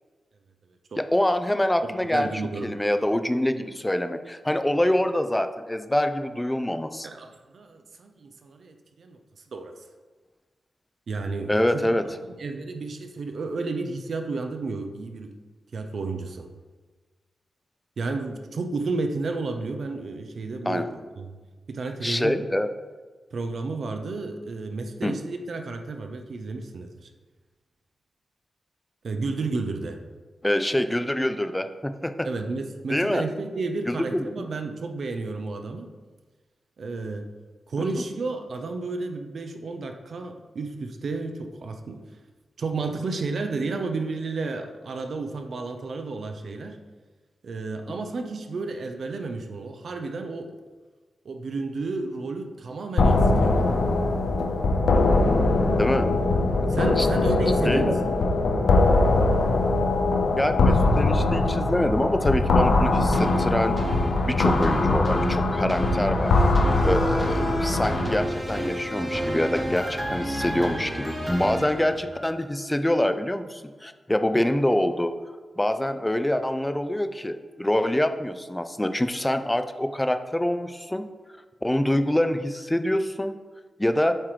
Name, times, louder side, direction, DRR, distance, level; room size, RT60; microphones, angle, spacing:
voice 1, 1.0-7.1 11.5-12.0 20.7-20.8 22.0-22.7 25.0-25.2 30.4-32.3 32.9-33.3 33.9-34.5 37.8-37.9 55.8-56.1 57.0-57.1 57.6-58.0 60.4-63.8 64.2-66.3 66.8-75.1 75.6-81.1 81.6-83.3 83.8-84.2, left 1 dB, 10° left, 9 dB, 0.4 m, -25 dB
voice 2, 2.1-2.7 7.0-9.2 9.5-9.7 11.1-11.9 12.4-15.3 15.7-16.4 18.0-21.3 21.7-22.4 23.3-27.1 29.0-30.0 32.2-35.9 36.8-37.3 37.7-42.0 42.6-46.8 47.4-50.6 51.2-53.8 56.7-58.2, right 3 dB, 65° right, 5 dB, 0.6 m, -32 dB
sound 1, 53.0-68.2, left 2 dB, 80° left, 0.6 m, -22 dB
sound 2, 63.1-72.5 73.0-73.1, equal, 15° right, 1.1 m, -31 dB
7.4 x 3.0 x 4.9 m, 1.3 s
wide cardioid pair, 95°, 0 cm